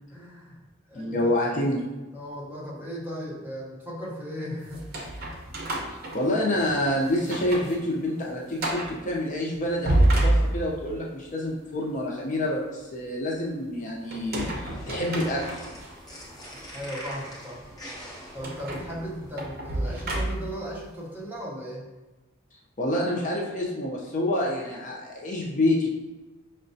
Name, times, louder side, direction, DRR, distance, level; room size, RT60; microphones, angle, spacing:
voice 1, 0.1-0.6 0.9-1.3 2.1-4.8 16.7-17.7 18.3-21.9, equal, 10° right, -5 dB, 0.8 m, -36 dB
voice 2, 0.9-1.8 5.9-15.6 22.8-25.9, left 1 dB, 40° left, -2 dB, 0.5 m, -27 dB
sound 1, 4.7-6.8 7.2-7.8 8.1-8.2 8.6-9.0 9.6-10.9 14.1-15.9 16.5-16.7 18.4-20.7, right 1 dB, 50° right, 0.6 m, -28 dB
sound 2, 14.4-19.4, equal, 20° left, 0.8 m, -43 dB
5.6 x 2.1 x 2.6 m, 1.2 s
head